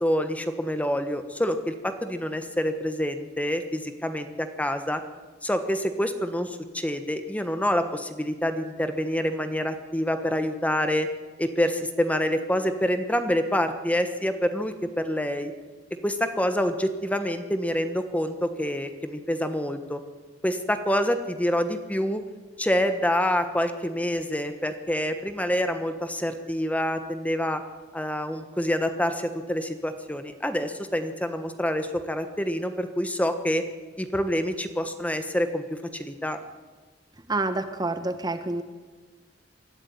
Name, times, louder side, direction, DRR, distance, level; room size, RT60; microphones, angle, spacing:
voice 1, 0.0-5.0 5.4-11.1 11.4-15.5 16.0-20.0 20.4-22.2 22.6-27.6 27.9-33.6 34.0-36.4, equal, 10° left, 8 dB, 1.3 m, -27 dB
voice 2, 37.3-38.6, right 2 dB, 25° right, 9 dB, 1.1 m, -28 dB
23.5 x 13.0 x 9.6 m, 1.3 s
head